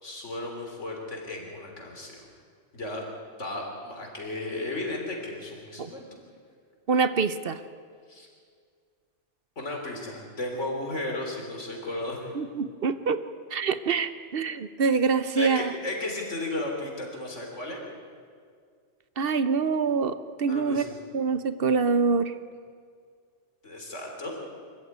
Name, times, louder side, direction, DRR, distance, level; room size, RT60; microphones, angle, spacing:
voice 1, 0.0-2.2 2.7-3.0 3.4-6.1 8.1-8.3 9.6-12.4 15.4-17.9 20.5-21.0 23.6-24.3, left 2 dB, 90° left, 1 dB, 3.9 m, -34 dB
voice 2, 6.9-7.6 12.3-13.2 13.5-15.7 19.2-20.8 21.1-22.3, right 5 dB, 55° right, 12 dB, 0.9 m, -25 dB
24.0 x 14.5 x 9.4 m, 2.1 s
omnidirectional pair, 1.2 m